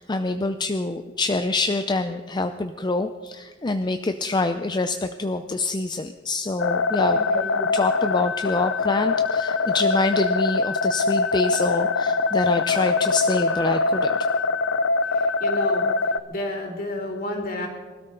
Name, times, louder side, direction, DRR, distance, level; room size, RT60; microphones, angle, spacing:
voice 1, 0.0-14.2, left 2 dB, 25° left, 8 dB, 0.5 m, -26 dB
sound 1, 6.6-16.2, left 4 dB, 75° left, 0.6 m, -23 dB
voice 2, 7.1-7.6 15.1-15.9 16.3-17.7, left 1 dB, 50° left, 1 dB, 3.8 m, -31 dB
24.0 x 13.0 x 3.9 m, 1.5 s
head